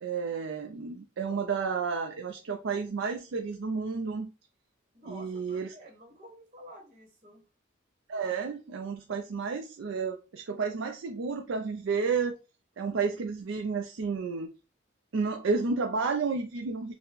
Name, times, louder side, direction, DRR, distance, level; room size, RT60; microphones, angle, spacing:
voice 1, 0.0-4.3 5.0-5.7 8.1-12.3 12.8-14.5 15.1-17.0, right 5 dB, 75° right, 0.4 m, -31 dB
voice 2, 4.9-7.5, equal, 35° right, 0.9 m, -50 dB
4.3 x 2.1 x 3.9 m
head